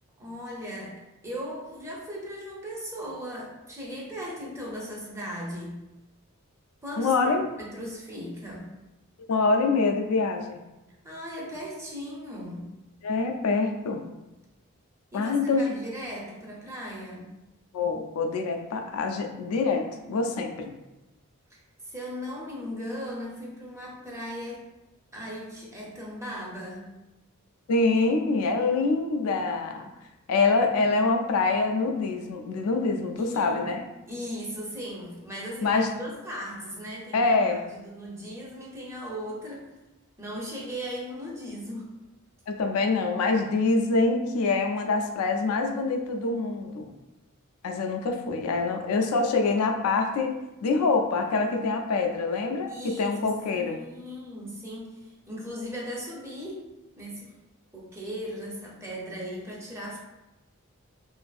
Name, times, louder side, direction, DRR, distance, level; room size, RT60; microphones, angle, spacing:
voice 1, 0.2-1.0 1.2-5.8 6.8-8.7 11.0-12.7 15.1-17.3 21.5-24.7 25.1-26.9 33.2-33.8 34.1-39.7 40.2-41.9 52.7-53.3 53.5-56.7 57.0-57.3 57.7-60.0, equal, 15° right, -4 dB, 0.5 m, -38 dB
voice 2, 7.0-7.5 9.3-10.6 13.0-14.0 15.1-15.7 17.7-20.8 27.7-29.9 30.3-33.8 35.6-35.9 37.1-37.6 42.5-46.9 47.6-50.4 50.6-53.8, left 3 dB, 80° left, 4 dB, 0.3 m, -25 dB
2.5 x 2.5 x 2.3 m, 0.99 s
head